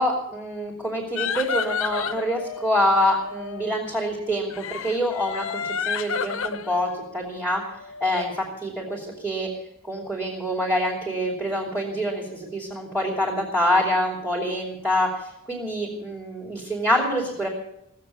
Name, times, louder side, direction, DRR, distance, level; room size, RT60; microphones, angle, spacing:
voice 1, 0.0-7.6 8.0-9.5 9.9-17.5, equal, 5° right, -5 dB, 3.0 m, -26 dB
sound 1, 1.2-3.8 4.5-8.3, left 6 dB, 65° left, 0.7 m, -31 dB
17.5 x 7.6 x 9.6 m, 0.81 s
head